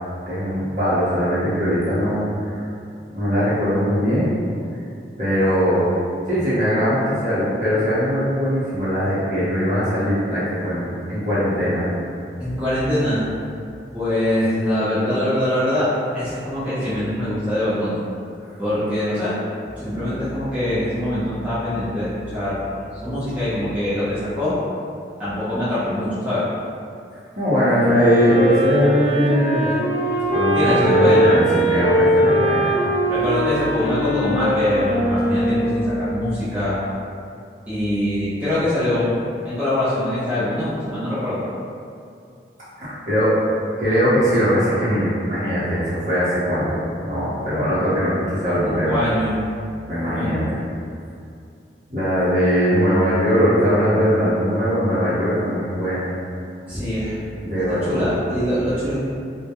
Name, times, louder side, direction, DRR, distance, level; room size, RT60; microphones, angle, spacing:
voice 1, 0.3-2.6 3.1-4.3 5.2-5.9 6.3-11.9 27.3-29.7 30.3-32.9 42.8-43.4 43.8-49.0 49.9-50.6 51.9-56.1 57.4-58.2, equal, 45° right, -11 dB, 0.8 m, -20 dB
voice 2, 12.4-13.2 13.9-18.0 18.6-19.3 19.8-22.6 23.0-24.6 25.2-26.4 30.5-31.3 33.1-36.8 37.7-39.1 39.4-41.4 48.6-49.3 50.0-50.4 56.7-57.2 57.8-58.9, left 1 dB, 10° right, -14 dB, 0.5 m, -23 dB
Wind instrument woodwind instrument, 27.7-36.1, equal, 40° left, 0.3 m, -20 dB
2.2 x 2.2 x 2.8 m, 2.4 s
head